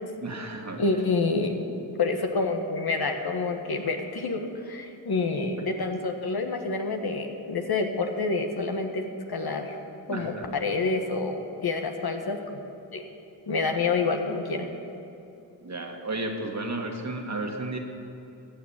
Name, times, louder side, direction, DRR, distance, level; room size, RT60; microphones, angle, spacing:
voice 1, 0.2-1.0 10.1-10.5 15.6-17.8, right 2 dB, 35° right, 3 dB, 2.0 m, -33 dB
voice 2, 0.8-1.6 2.0-9.7 10.1-12.4 12.9-13.0 13.5-14.7, left 3 dB, 55° left, 4 dB, 1.5 m, -28 dB
15.0 x 6.4 x 8.8 m, 2.9 s
supercardioid pair, 45°, 45 cm